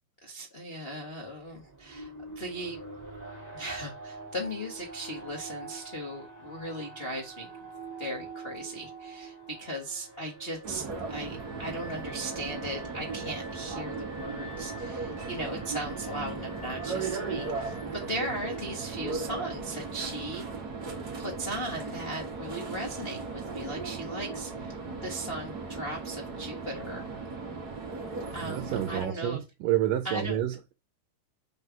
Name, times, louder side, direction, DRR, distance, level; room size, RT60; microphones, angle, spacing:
voice 1, 0.2-2.8 3.5-7.5 8.0-20.7 21.2-27.1 28.3-29.4 30.0-30.4, right 1 dB, 75° left, 0.5 m, -38 dB
Alarm, 1.2-19.1, right 3 dB, 20° right, 1.3 m, -45 dB
sound 1, 10.6-29.1, right 4 dB, 60° right, 1.0 m, -37 dB
voice 2, 28.4-30.7, right 12 dB, 80° right, 2.1 m, -29 dB
5.5 x 3.8 x 5.7 m
omnidirectional pair, 4.3 m